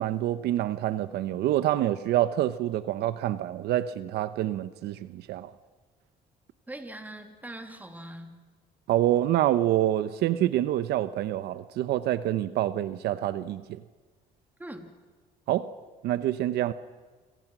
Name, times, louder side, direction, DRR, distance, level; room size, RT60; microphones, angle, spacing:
voice 1, 0.0-5.5 8.9-13.8 15.5-15.7 16.0-16.7, right 13 dB, 75° right, 0.9 m, -27 dB
voice 2, 6.7-8.4 14.6-14.9, right 1 dB, 10° right, 3.1 m, -41 dB
28.0 x 26.5 x 6.2 m
cardioid pair, 110°, 17 cm